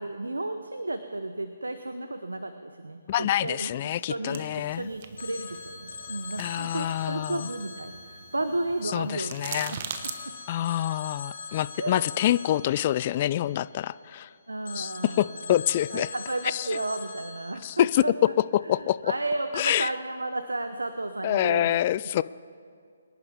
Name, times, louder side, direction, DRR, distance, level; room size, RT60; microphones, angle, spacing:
voice 1, 0.0-9.8 10.3-10.4 11.8-12.0 14.5-15.6 15.9-18.3 18.7-21.8, right 2 dB, 85° right, 9 dB, 0.8 m, -33 dB
voice 2, 3.1-4.9 6.4-7.5 8.9-9.8 10.5-14.3 14.7-16.1 16.4-16.7 17.6-18.0 18.4-19.1 19.5-19.9 21.2-22.2, left 13 dB, 35° left, 18 dB, 0.3 m, -26 dB
sound 1, 4.3-10.2, right 7 dB, 40° right, 1.1 m, -42 dB
Telephone, 5.2-9.5 9.9-14.2 14.7-17.5, left 4 dB, 60° left, 2.3 m, -43 dB
24.5 x 10.5 x 3.5 m, 2.3 s
figure-of-eight pair, 145°, 0 cm